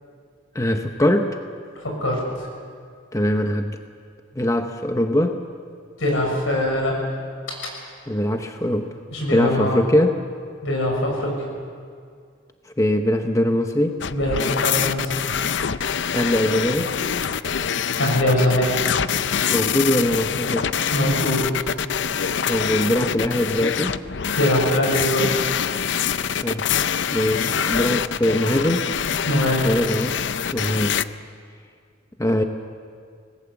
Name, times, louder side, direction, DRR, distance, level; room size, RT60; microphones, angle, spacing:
voice 1, 0.5-1.4 3.1-3.8 4.3-5.4 8.1-8.9 9.3-10.2 12.7-14.0 16.1-16.9 19.5-20.7 22.5-24.0 26.4-26.7 27.1-28.9 29.6-30.2 30.5-31.0 32.2-32.4, left 1 dB, 15° left, 5 dB, 0.9 m, -22 dB
voice 2, 1.8-2.2 6.0-7.0 9.1-9.8 10.6-11.3 14.1-15.2 18.0-18.7 20.9-21.4 24.4-25.4 29.3-29.6, left 1 dB, 90° left, 0 dB, 6.7 m, -22 dB
sound 1, 14.0-31.0, left 7 dB, 60° left, 0.5 m, -25 dB
25.5 x 19.0 x 7.1 m, 2.1 s
head